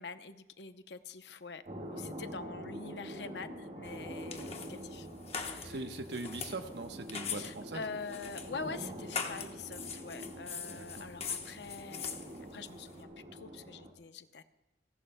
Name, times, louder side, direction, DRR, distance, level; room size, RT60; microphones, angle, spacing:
voice 1, 0.0-5.1 5.4-5.8 7.3-14.4, left 4 dB, 75° left, 10 dB, 0.7 m, -45 dB
sound 1, 1.7-13.9, right 1 dB, 45° right, 1.7 m, -46 dB
sound 2, 3.8-13.0, left 6 dB, 35° left, 1.1 m, -43 dB
voice 2, 5.6-7.8 10.7-11.1, right 2 dB, 75° right, 7 dB, 1.0 m, -41 dB
29.5 x 11.5 x 2.2 m, 1.0 s
head